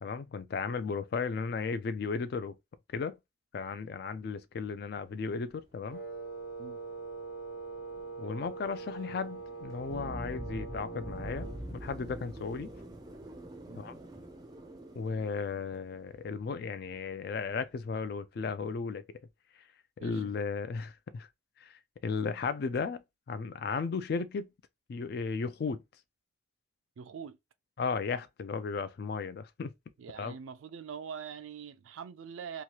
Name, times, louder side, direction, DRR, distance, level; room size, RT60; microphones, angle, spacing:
voice 1, 0.0-2.6 2.9-3.2 3.5-6.0 8.2-12.7 13.8-13.9 15.0-19.0 20.0-21.3 21.6-21.7 22.0-24.5 24.9-25.8 27.8-29.7 30.2-30.4, left 5 dB, 55° left, 0.3 m, -35 dB
sound 1, 4.6-18.1, right 1 dB, 20° right, 0.4 m, -53 dB
Wind instrument woodwind instrument, 5.9-11.7, right 4 dB, 70° left, 1.1 m, -43 dB
sound 2, 9.9-14.1, right 1 dB, 15° left, 0.7 m, -43 dB
voice 2, 27.0-27.4 30.0-32.6, right 7 dB, 85° right, 0.3 m, -43 dB
3.0 x 2.3 x 2.8 m
head